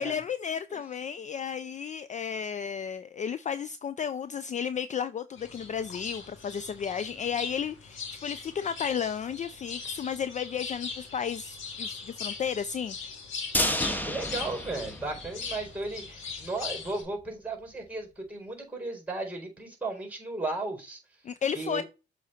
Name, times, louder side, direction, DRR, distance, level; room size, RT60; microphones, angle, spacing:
voice 1, 0.0-13.0 21.2-21.8, left 7 dB, 35° left, 0.4 m, -33 dB
sound 1, 5.4-17.0, left 5 dB, 90° left, 2.2 m, -40 dB
sound 2, 13.5-15.7 16.0-16.1 16.5-16.6, left 1 dB, 10° left, 1.0 m, -30 dB
voice 2, 14.0-21.0 21.5-21.8, right 2 dB, 5° right, 4.3 m, -35 dB
7.4 x 4.0 x 4.4 m
cardioid pair, 90°, 20 cm